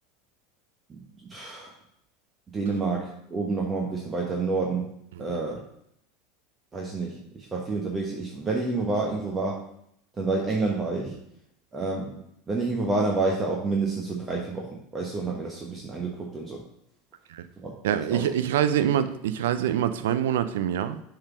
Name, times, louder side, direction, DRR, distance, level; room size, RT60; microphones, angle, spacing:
voice 1, 1.3-1.7 2.5-4.9 5.2-5.6 6.7-9.6 10.2-11.2 11.7-12.2 12.5-16.6 17.6-17.7 18.1-18.2, right 3 dB, 25° right, -1 dB, 1.2 m, -28 dB
voice 2, 17.8-21.0, right 10 dB, 75° right, 11 dB, 0.5 m, -25 dB
6.3 x 3.9 x 6.0 m, 0.75 s
hypercardioid pair, 85°, 0 cm